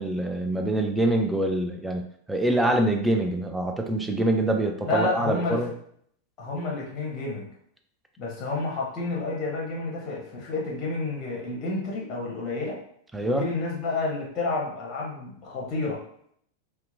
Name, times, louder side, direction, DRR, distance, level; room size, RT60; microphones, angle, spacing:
voice 1, 0.0-5.7 13.1-13.4, right 1 dB, 5° right, 3 dB, 0.4 m, -25 dB
voice 2, 4.8-5.6 6.4-7.5 8.2-12.8 13.2-16.0, left 3 dB, 30° left, -3 dB, 0.8 m, -30 dB
2.8 x 2.1 x 2.5 m, 0.65 s
figure-of-eight pair, 90°, 0 cm